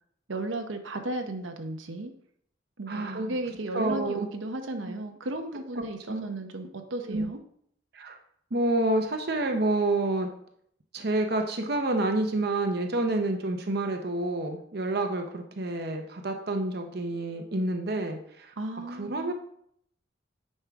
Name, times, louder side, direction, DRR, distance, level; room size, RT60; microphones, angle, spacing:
voice 1, 0.3-2.1 2.8-7.4 18.6-19.3, right 2 dB, 85° right, 6 dB, 0.8 m, -34 dB
voice 2, 2.9-3.3 3.7-4.3 4.9-5.0 5.8-6.3 7.1-7.3 7.9-8.2 8.5-10.3 10.9-18.5 18.9-19.3, right 2 dB, 55° right, 4 dB, 0.8 m, -28 dB
9.1 x 5.4 x 3.6 m, 0.67 s
head